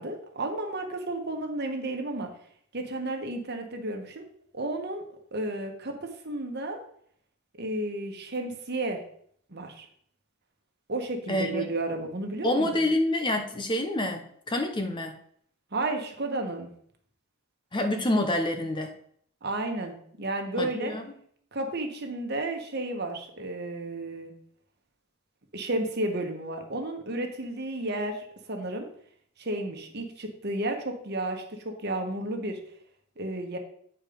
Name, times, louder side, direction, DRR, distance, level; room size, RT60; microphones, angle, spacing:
voice 1, 0.0-2.3 2.7-4.3 4.5-6.8 7.6-9.0 9.5-9.9 10.9-12.9 15.7-16.7 19.4-20.9 21.5-24.3 25.5-28.9 29.4-32.6 33.2-33.6, right 2 dB, 50° right, 4 dB, 1.3 m, -32 dB
voice 2, 11.3-11.7 12.4-15.1 17.7-18.9 20.6-21.0, left 1 dB, 20° left, 6 dB, 0.7 m, -27 dB
8.7 x 4.5 x 5.1 m, 0.64 s
head